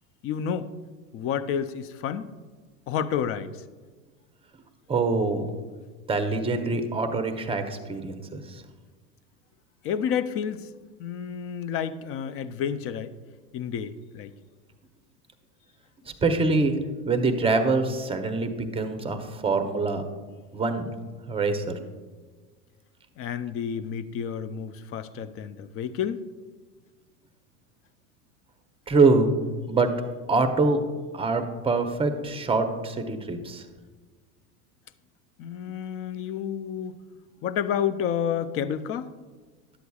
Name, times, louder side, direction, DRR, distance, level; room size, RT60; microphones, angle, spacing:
voice 1, 0.2-0.7 1.1-2.3 2.9-3.6 9.8-10.7 11.0-13.1 13.5-14.3 23.2-26.2 35.4-37.0 37.4-39.1, left 8 dB, 30° left, 14 dB, 0.4 m, -30 dB
voice 2, 4.9-5.5 6.1-8.6 16.2-16.7 17.1-20.0 20.5-20.9 21.3-21.7 28.9-29.3 29.7-29.9 30.3-30.8 31.1-33.6, right 3 dB, 15° right, 6 dB, 0.7 m, -24 dB
11.5 x 8.0 x 2.3 m, 1.4 s
hypercardioid pair, 95°, 45 cm